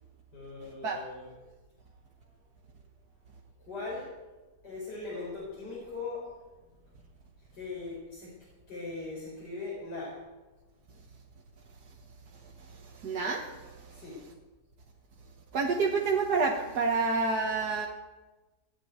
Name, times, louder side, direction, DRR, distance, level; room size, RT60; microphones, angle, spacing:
voice 1, 0.3-1.4 3.6-4.1 4.6-6.3 7.5-8.3 8.7-10.2 13.9-14.2, left 3 dB, 90° left, -6 dB, 5.1 m, -39 dB
voice 2, 13.0-13.7 15.5-17.9, right 4 dB, 75° right, 1 dB, 1.8 m, -28 dB
16.0 x 9.2 x 9.2 m, 1.2 s
omnidirectional pair, 1.7 m